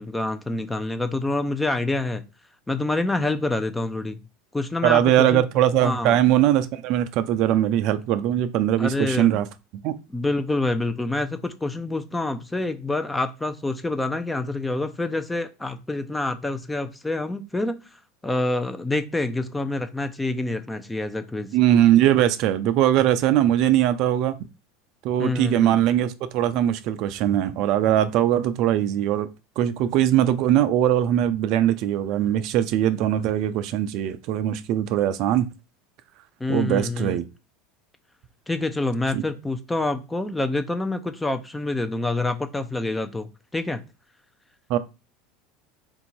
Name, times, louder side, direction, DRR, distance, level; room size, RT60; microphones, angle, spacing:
voice 1, 0.0-2.2 2.7-4.2 4.5-5.4 5.8-6.2 8.8-9.4 10.1-17.8 18.2-21.5 25.2-25.8 36.4-37.2 38.5-43.8, left 2 dB, 10° left, 0.6 m, -27 dB
voice 2, 4.8-9.5 9.8-9.9 21.5-24.3 25.0-29.3 29.6-35.5 36.5-37.2 39.1-39.2 44.7-44.8, right 11 dB, 60° right, 0.4 m, -21 dB
3.7 x 2.7 x 4.4 m
supercardioid pair, 105°, 0 cm